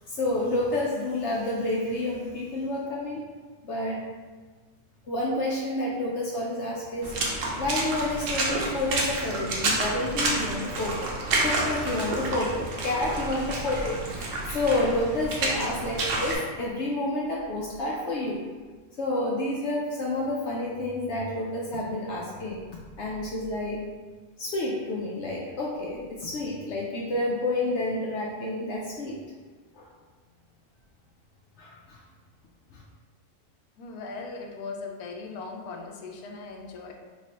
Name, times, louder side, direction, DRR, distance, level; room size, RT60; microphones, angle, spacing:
voice 1, 0.1-3.2 3.6-4.1 5.1-7.1 7.6-11.1 11.4-18.4 19.0-22.6 23.0-23.8 24.4-29.2 29.8-29.9 31.6-32.0 32.7-32.8, left 1 dB, 65° left, -3 dB, 0.7 m, -29 dB
Water / Splash splatter, 7.0-16.4, right 2 dB, 65° right, 1.0 m, -29 dB
voice 2, 33.8-36.9, left 4 dB, 85° left, 2 dB, 1.1 m, -39 dB
3.6 x 3.1 x 2.8 m, 1.4 s
omnidirectional pair, 1.6 m